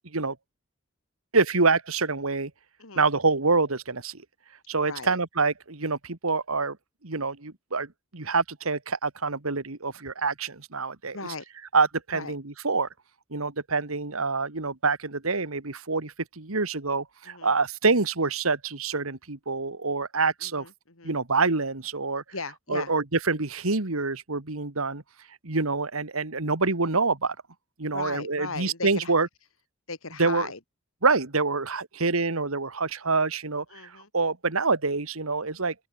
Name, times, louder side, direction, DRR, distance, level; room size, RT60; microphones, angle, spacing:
voice 1, 1.3-2.5 3.0-4.2 4.7-6.8 7.0-11.2 11.7-12.9 13.3-20.7 21.0-22.2 22.7-25.0 25.4-27.4 27.8-29.3 30.2-30.5 31.0-35.7, right 4 dB, 80° right, 2.0 m, -26 dB
voice 2, 11.1-11.5 12.1-12.4 17.2-17.5 20.4-21.2 22.3-22.9 27.9-29.1 29.9-30.6 33.7-34.1, left 4 dB, 75° left, 3.3 m, -37 dB
open air
head